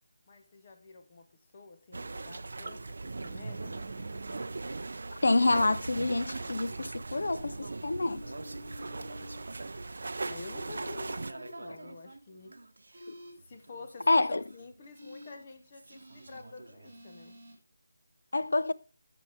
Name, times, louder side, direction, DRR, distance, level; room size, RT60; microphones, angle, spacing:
voice 1, 0.3-1.3 1.5-3.9 10.3-12.6 13.4-17.4, left 3 dB, 25° left, 0.9 m, -49 dB
sound 1, 1.9-11.3, right 3 dB, 50° right, 0.5 m, -39 dB
sound 2, 3.2-4.4 5.3-6.8 7.8-9.4 10.1-11.5 12.9-13.3 14.0-14.3 14.9-15.3 15.9-16.4 16.8-17.5, equal, 20° right, 3.9 m, -50 dB
sound 3, 3.4-15.0 15.2-17.2, right 2 dB, 80° right, 0.8 m, -50 dB
voice 2, 5.2-8.2 13.1-13.2 14.1-14.4 18.3-18.7, left 2 dB, 65° left, 0.6 m, -27 dB
13.5 x 5.9 x 3.5 m
figure-of-eight pair, 175°, 0 cm